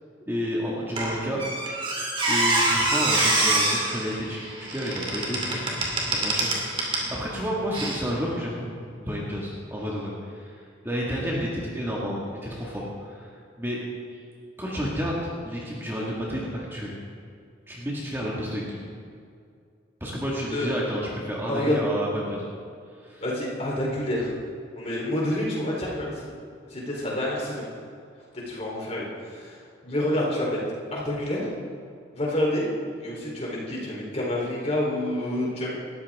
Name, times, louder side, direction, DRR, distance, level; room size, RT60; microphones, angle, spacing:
voice 1, 0.3-1.4 2.3-5.6 6.2-10.5 10.8-13.3 13.6-13.8 14.1-14.2 14.6-15.2 15.4-16.9 17.7-18.6 20.0-22.5 23.0-23.2, equal, 10° right, -5 dB, 2.0 m, -31 dB
Squeak, 1.0-7.1 7.7-7.9, right 2 dB, 30° right, 2.6 m, -25 dB
voice 2, 21.5-21.8 23.2-24.3 24.8-26.3 26.7-27.7 28.3-29.6 29.8-30.6 30.9-31.5 32.1-32.7 33.0-35.8, left 1 dB, 35° left, -4 dB, 3.8 m, -28 dB
19.0 x 14.0 x 3.7 m, 2.3 s
head